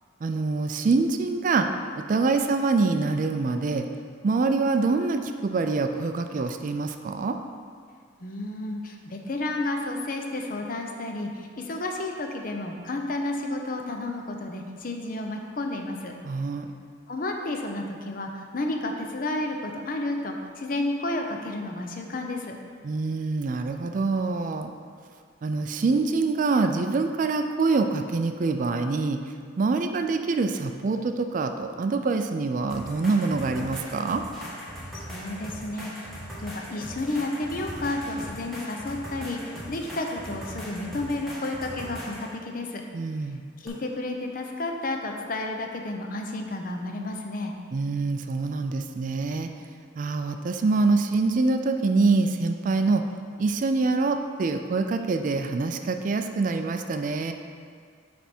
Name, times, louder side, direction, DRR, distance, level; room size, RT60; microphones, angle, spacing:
voice 1, 0.2-1.7 2.0-3.9 4.2-7.4 16.2-16.7 22.8-24.7 25.4-29.2 29.6-34.2 42.9-43.4 47.7-49.5 50.0-53.0 53.4-57.3, right 3 dB, 40° right, 7 dB, 0.3 m, -25 dB
voice 2, 8.2-16.1 17.1-22.6 34.9-36.1 36.4-42.8 43.6-47.5, left 2 dB, 45° left, 3 dB, 0.6 m, -31 dB
sound 1, 32.7-42.3 43.7-43.8, equal, ahead, 1.4 m, -39 dB
9.1 x 3.4 x 4.3 m, 2.1 s
head